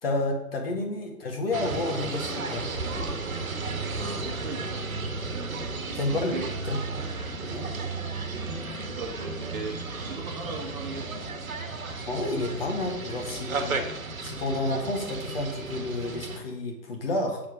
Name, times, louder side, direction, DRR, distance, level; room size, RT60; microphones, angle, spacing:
voice 1, 0.0-2.7 5.9-6.4 6.7-6.8 7.5-7.7 12.1-13.8 14.2-17.4, left 2 dB, 35° left, 2 dB, 1.9 m, -30 dB
sound 1, 1.5-16.4, right 3 dB, 55° right, 1.5 m, -34 dB
voice 2, 3.9-4.8 5.7-6.5 8.8-11.3, right 3 dB, 30° right, 1 dB, 1.5 m, -38 dB
7.6 x 6.7 x 5.1 m, 1.1 s
figure-of-eight pair, 140°, 48 cm